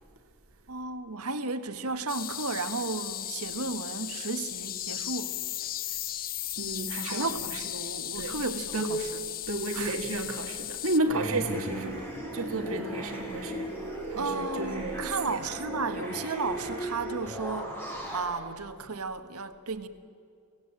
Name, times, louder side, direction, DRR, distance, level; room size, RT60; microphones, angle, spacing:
voice 1, 0.7-5.4 7.0-9.2 9.7-9.9 14.1-17.7 18.1-19.9, right 3 dB, 85° right, 9 dB, 1.5 m, -34 dB
sound 1, 2.1-11.0, left 12 dB, 40° left, 0.6 m, -36 dB
voice 2, 6.6-7.3 8.2-8.4 8.7-8.9 9.5-13.8 14.1-15.4, right 2 dB, 65° right, 4 dB, 1.8 m, -32 dB
sound 2, 11.0-18.2, equal, 10° left, 6.1 m, -36 dB
25.0 x 17.0 x 8.9 m, 2.5 s
head